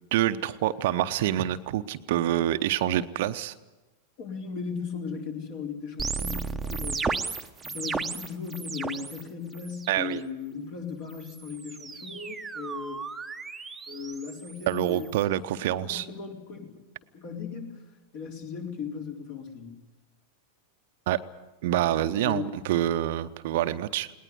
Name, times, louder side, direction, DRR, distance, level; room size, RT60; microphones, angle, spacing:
voice 1, 0.1-3.5 9.9-10.2 14.7-16.0 21.1-21.2 21.6-24.1, right 13 dB, 50° right, 11 dB, 0.8 m, -26 dB
voice 2, 4.2-7.3 7.6-13.0 13.9-15.1 15.6-16.7 17.1-17.8 18.1-19.8 22.2-22.4, left 6 dB, 50° left, 1 dB, 4.3 m, -37 dB
sound 1, 6.0-9.2 9.5-10.1 11.1-15.2, right 4 dB, 10° right, 1.0 m, -35 dB
20.0 x 19.0 x 9.4 m, 1.1 s
figure-of-eight pair, 90°, 0 cm